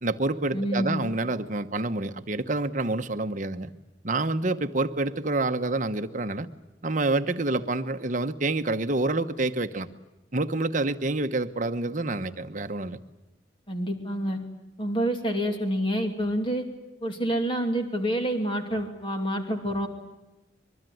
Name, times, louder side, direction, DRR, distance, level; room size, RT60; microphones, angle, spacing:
voice 1, 0.0-3.7 4.0-6.5 6.8-9.9 10.3-13.0, right 2 dB, 40° right, 8 dB, 1.1 m, -27 dB
voice 2, 0.5-1.0 13.7-14.4 14.8-16.6 17.0-19.9, equal, 25° left, 4 dB, 2.8 m, -27 dB
24.5 x 23.0 x 9.3 m, 1.0 s
head